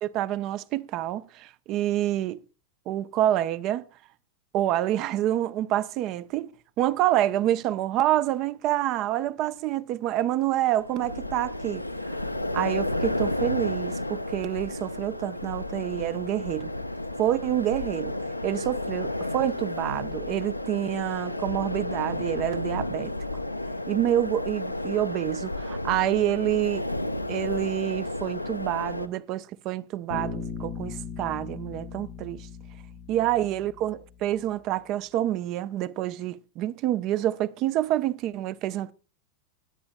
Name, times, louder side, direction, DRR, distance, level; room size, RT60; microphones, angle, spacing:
voice 1, 0.0-2.4 2.9-3.8 4.5-6.5 6.8-11.9 12.5-16.7 17.2-18.2 18.4-23.1 23.9-26.8 27.3-32.5 33.1-38.9, right 13 dB, 40° right, 0.6 m, -27 dB
sound 1, 10.8-29.1, left 1 dB, 90° left, 0.5 m, -32 dB
Bass guitar, 30.1-34.0, left 5 dB, 85° right, 2.9 m, -38 dB
20.5 x 8.7 x 2.2 m
figure-of-eight pair, 90°, 0 cm